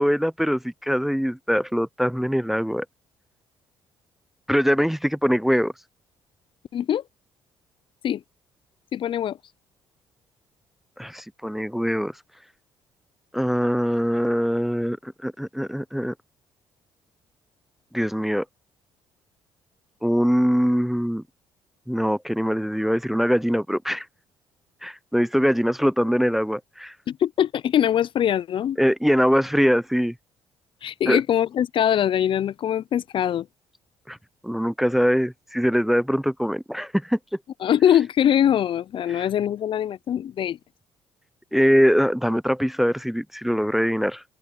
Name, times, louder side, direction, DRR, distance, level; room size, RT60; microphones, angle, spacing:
voice 1, 0.0-2.8 4.5-5.7 11.0-12.1 13.3-16.1 17.9-18.4 20.0-21.2 21.9-24.1 24.8-26.9 28.8-30.1 31.1-31.2 34.1-34.2 34.4-37.2 39.1-39.3 41.5-44.2, equal, ahead, 0.5 m, -22 dB
voice 2, 6.7-7.0 8.0-8.2 8.9-9.4 27.1-28.8 30.8-33.5 37.6-40.6, left 10 dB, 55° left, 0.5 m, -22 dB
supercardioid pair, 75°, 11 cm